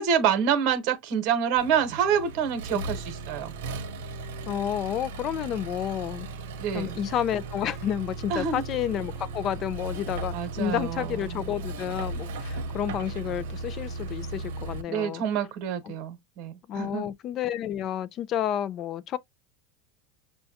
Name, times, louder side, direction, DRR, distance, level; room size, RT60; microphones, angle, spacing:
voice 1, 0.0-3.5 6.6-7.0 8.3-8.6 10.3-11.5 14.9-17.1, right 8 dB, 55° right, 1.0 m, -27 dB
Accelerating revving vroom, 1.6-14.8, right 3 dB, 80° right, 0.7 m, -36 dB
voice 2, 4.5-6.3 6.7-15.2 15.8-15.9 16.7-19.2, left 10 dB, 40° left, 0.4 m, -30 dB
5.6 x 2.2 x 2.7 m
supercardioid pair, 140°, 0 cm